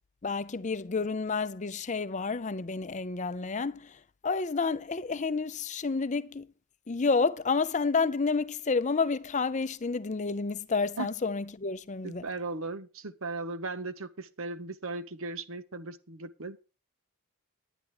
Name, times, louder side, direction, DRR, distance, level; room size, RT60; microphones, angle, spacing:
voice 1, 0.2-3.9 4.2-6.5 6.9-12.2, left 4 dB, 35° left, 0.5 m, -30 dB
voice 2, 12.0-16.7, right 3 dB, 65° right, 0.9 m, -37 dB
10.0 x 10.0 x 4.9 m
head